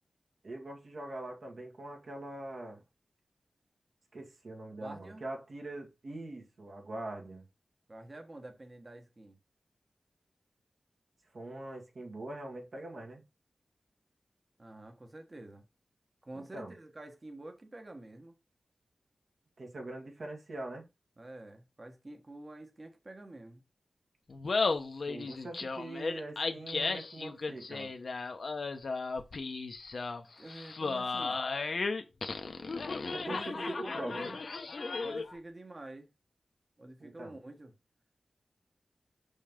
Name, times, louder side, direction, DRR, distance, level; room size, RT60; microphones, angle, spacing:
voice 1, 0.4-2.8 4.1-7.4 11.3-13.2 16.4-16.7 19.6-20.9 25.1-27.9 33.1-34.3 37.0-37.4, right 2 dB, 65° right, 2.0 m, -43 dB
voice 2, 4.7-5.2 7.9-9.4 14.6-15.6 16.2-18.3 21.2-23.6 30.4-31.4 33.2-34.4 35.0-36.1 36.8-37.7, right 2 dB, 35° right, 1.4 m, -48 dB
Laughter, 24.3-35.4, left 4 dB, 65° left, 0.9 m, -35 dB
5.5 x 5.3 x 3.7 m
wide cardioid pair, 80°, 0 cm